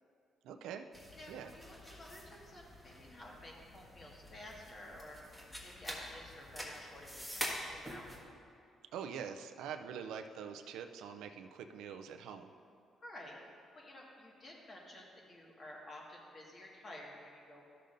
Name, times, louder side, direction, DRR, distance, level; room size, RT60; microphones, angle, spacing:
voice 1, 0.4-0.9 1.3-1.5 8.9-12.5, right 7 dB, 90° right, 6 dB, 0.4 m, -44 dB
sound 1, 0.9-8.2, equal, 10° left, 1.5 m, -46 dB
voice 2, 1.2-8.1 13.0-17.6, left 1 dB, 45° left, -2 dB, 1.7 m, -52 dB
13.0 x 6.6 x 2.6 m, 2.6 s
cardioid pair, 90°, 0 cm